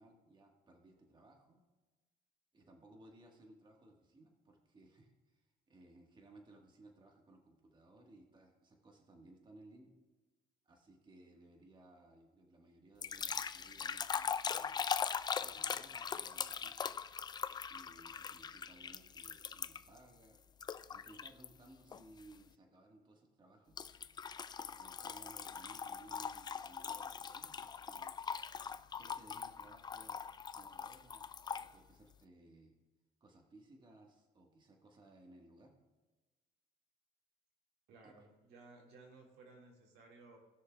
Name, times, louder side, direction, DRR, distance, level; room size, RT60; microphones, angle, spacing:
voice 1, 0.0-1.6 2.5-9.9 10.6-14.9 15.4-16.8 17.7-20.4 20.9-23.8 24.7-28.2 28.9-31.3 31.5-32.7 33.2-35.8 38.0-38.3, right 2 dB, 25° right, 2 dB, 1.5 m, -61 dB
sound 1, 13.0-20.0 20.6-21.5 21.9-22.2 23.8-31.7, left 6 dB, 25° left, 0.3 m, -41 dB
voice 2, 37.9-40.4, right 3 dB, 80° right, 0 dB, 2.1 m, -58 dB
18.5 x 6.4 x 2.3 m, 1.2 s
cardioid pair, 110°, 17 cm